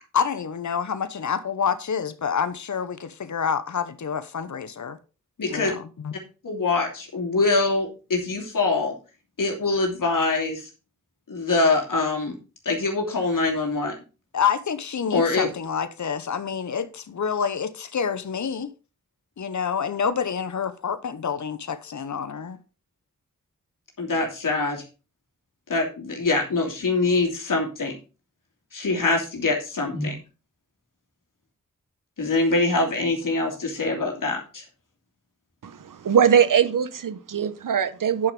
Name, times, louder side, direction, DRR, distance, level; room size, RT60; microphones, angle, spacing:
voice 1, 0.1-5.0 5.5-6.1 14.3-18.7 19.4-22.6, left 7 dB, 65° left, 0.9 m, -27 dB
voice 2, 5.4-5.7 6.4-8.9 9.4-10.7 11.3-12.4 12.6-13.9 15.1-15.5 24.0-24.8 25.7-28.0 28.7-30.1 32.2-34.6, left 3 dB, 85° left, 2.8 m, -24 dB
voice 3, 35.6-38.3, right 8 dB, 90° right, 0.9 m, -21 dB
9.8 x 6.0 x 5.2 m
cardioid pair, 40°, 31 cm